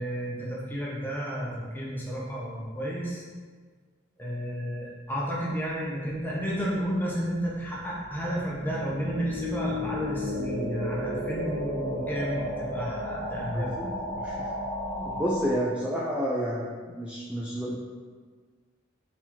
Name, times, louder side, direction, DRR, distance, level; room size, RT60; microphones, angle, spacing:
voice 1, 0.0-3.2 4.2-13.8, equal, 10° left, -5 dB, 0.8 m, -32 dB
sound 1, 6.6-15.6, left 1 dB, 85° right, 1.4 m, -34 dB
voice 2, 13.5-14.5 14.9-16.7 16.9-17.8, equal, 5° right, -6 dB, 0.4 m, -30 dB
4.3 x 3.9 x 3.0 m, 1.5 s
head